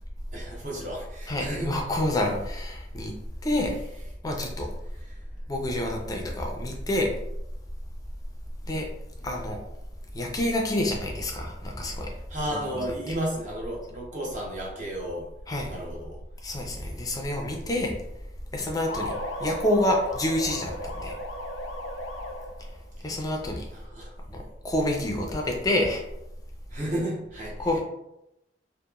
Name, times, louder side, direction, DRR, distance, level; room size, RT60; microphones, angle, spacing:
voice 1, 0.3-1.7 5.1-5.2 12.3-15.3 15.7-16.2 23.9-24.2 26.7-27.5, right 1 dB, 45° right, -3 dB, 0.8 m, -33 dB
voice 2, 1.3-3.1 3.4-3.7 4.2-4.7 5.5-7.1 8.7-8.9 9.2-9.6 10.1-12.1 12.7-13.1 15.5-15.7 16.4-17.9 18.5-19.1 19.4-21.1 23.0-23.6 24.3-26.0 27.6-27.8, left 1 dB, 20° left, 0 dB, 0.4 m, -28 dB
sound 1, 18.9-22.8, left 1 dB, 85° left, 0.4 m, -36 dB
2.9 x 2.1 x 2.3 m, 0.85 s
head